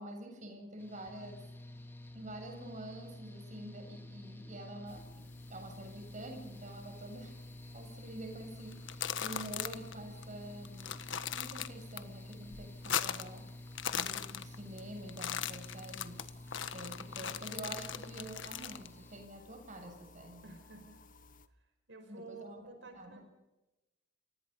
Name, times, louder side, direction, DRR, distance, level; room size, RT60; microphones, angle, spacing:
voice 1, 0.0-1.5 2.1-7.3 7.7-11.0 11.3-16.3 16.7-20.4 22.1-22.6 23.0-23.2, right 1 dB, 40° right, 4 dB, 7.6 m, -47 dB
Mechanical fan, 0.8-19.3, left 1 dB, 10° left, 2.8 m, -50 dB
sound 1, 4.9-21.5, left 2 dB, 45° left, 1.6 m, -59 dB
sound 2, 8.7-9.9 10.2-10.3 10.7-12.0 12.3-13.4 13.7-14.8 15.1-18.9, left 9 dB, 85° left, 1.5 m, -38 dB
voice 2, 20.4-20.9 21.5-23.2, right 3 dB, 75° right, 5 dB, 5.4 m, -51 dB
29.5 x 24.5 x 5.6 m, 1.0 s
head